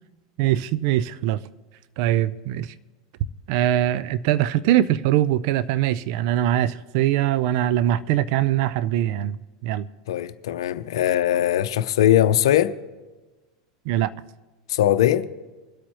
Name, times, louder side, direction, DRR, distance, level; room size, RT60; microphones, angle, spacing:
voice 1, 0.4-1.4 2.0-2.7 3.5-9.9 13.9-14.1, right 12 dB, 60° right, 0.5 m, -22 dB
voice 2, 10.1-12.7 14.7-15.3, left 12 dB, 75° left, 0.6 m, -20 dB
25.0 x 8.4 x 3.0 m
hypercardioid pair, 95°, 3 cm